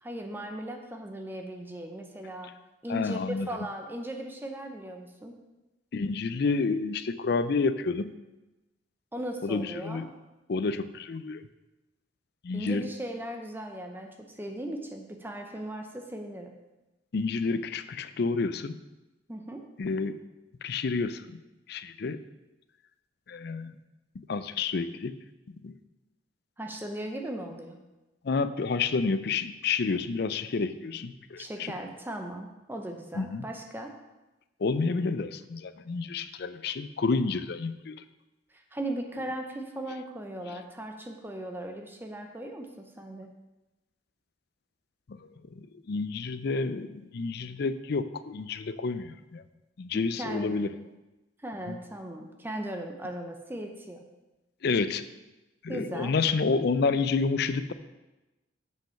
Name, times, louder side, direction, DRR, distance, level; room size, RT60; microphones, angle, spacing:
voice 1, 0.0-2.5 2.8-5.4 9.1-10.1 12.5-16.5 19.3-19.6 26.6-27.8 31.4-33.9 38.5-43.3 50.2-50.7 51.4-54.0 55.7-56.1, right 1 dB, 10° right, 3 dB, 0.7 m, -38 dB
voice 2, 2.9-3.5 5.9-8.1 9.4-10.1 10.5-11.5 12.4-12.9 17.1-18.8 19.8-20.2 20.6-21.4 21.7-22.2 23.3-23.7 24.3-25.2 25.6-25.8 28.2-31.7 33.2-33.5 34.6-38.0 45.1-45.2 45.6-49.4 49.8-50.7 51.7-51.8 54.6-55.0 55.6-57.7, left 4 dB, 55° left, 13 dB, 0.4 m, -29 dB
7.7 x 6.0 x 5.7 m, 1.0 s
head